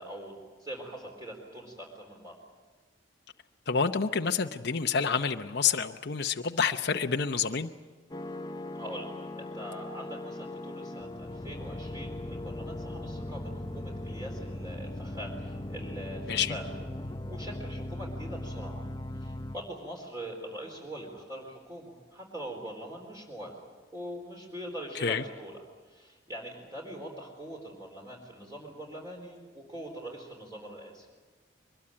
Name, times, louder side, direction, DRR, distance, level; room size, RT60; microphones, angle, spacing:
voice 1, 0.0-2.3 8.7-9.1 9.4-16.6 17.3-18.8 19.1-23.5 23.9-25.6 25.9-31.1, right 1 dB, 20° right, -1 dB, 4.1 m, -43 dB
voice 2, 3.7-7.7 16.3-16.6 24.9-25.2, left 6 dB, 60° left, 5 dB, 0.8 m, -28 dB
sound 1, 8.1-19.6, left 1 dB, 20° left, 0.9 m, -39 dB
23.5 x 21.5 x 8.8 m, 1.3 s
head